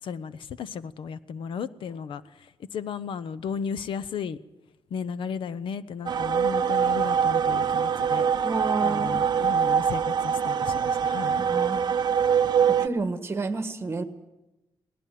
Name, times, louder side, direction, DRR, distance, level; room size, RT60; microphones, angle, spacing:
voice 1, 0.0-4.4 4.9-8.5 8.8-11.4, left 6 dB, 70° left, 15 dB, 0.8 m, -35 dB
sound 1, 6.1-12.9, right 7 dB, 50° right, 0.7 m, -24 dB
voice 2, 8.4-9.2 11.5-11.9 12.7-14.0, right 3 dB, 25° right, 9 dB, 1.5 m, -30 dB
19.5 x 18.0 x 9.3 m, 0.98 s
wide cardioid pair, 145°, 9 cm